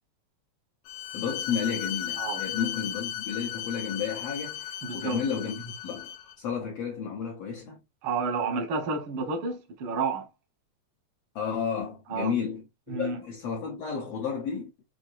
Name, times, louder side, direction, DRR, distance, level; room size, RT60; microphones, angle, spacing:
Bowed string instrument, 0.9-6.4, left 12 dB, 85° left, 1.6 m, -36 dB
voice 1, 1.1-6.1 6.4-7.8 11.3-14.7, left 6 dB, 70° left, 1.5 m, -32 dB
voice 2, 4.8-5.2 8.0-10.3 12.1-12.3 12.9-13.2, right 4 dB, 70° right, 1.3 m, -30 dB
6.1 x 2.6 x 2.4 m
omnidirectional pair, 3.9 m